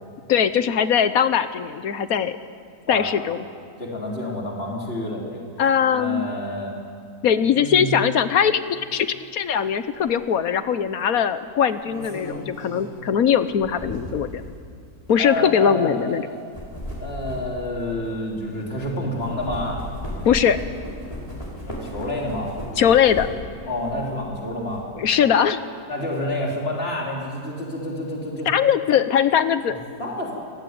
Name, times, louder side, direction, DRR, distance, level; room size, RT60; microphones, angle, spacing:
voice 1, 0.3-2.4 2.9-3.4 5.6-6.3 7.2-14.4 15.1-16.2 20.2-20.6 22.8-23.3 25.0-25.6 28.5-29.8, left 8 dB, 70° left, 12 dB, 1.3 m, -20 dB
voice 2, 3.8-5.5 5.9-6.7 7.5-8.0 15.2-16.4 17.0-19.8 21.7-22.5 23.7-24.8 25.9-28.5 29.7-30.3, left 1 dB, 40° left, -2 dB, 3.7 m, -29 dB
sound 1, 10.0-10.2 11.5-14.4 15.1-15.2 16.3-18.9 19.2-23.6 23.9-24.8, equal, 20° left, 5.8 m, -35 dB
26.0 x 15.5 x 9.5 m, 2.3 s
omnidirectional pair, 1.6 m